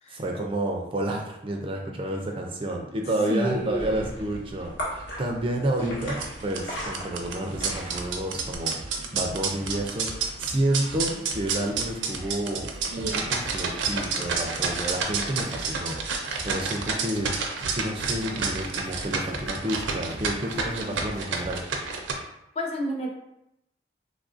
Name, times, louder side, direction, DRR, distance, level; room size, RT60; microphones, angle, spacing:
voice 1, 0.1-21.6, right 1 dB, 30° right, 1 dB, 0.3 m, -30 dB
voice 2, 3.3-4.0 22.6-23.1, equal, 35° left, 0 dB, 0.5 m, -30 dB
sound 1, 3.5-8.6, equal, 75° left, 1.0 m, -38 dB
sound 2, 6.1-22.1, right 4 dB, 90° right, 0.5 m, -30 dB
sound 3, 7.5-21.6, right 1 dB, 20° left, 1.0 m, -43 dB
3.4 x 2.4 x 2.5 m, 0.84 s
head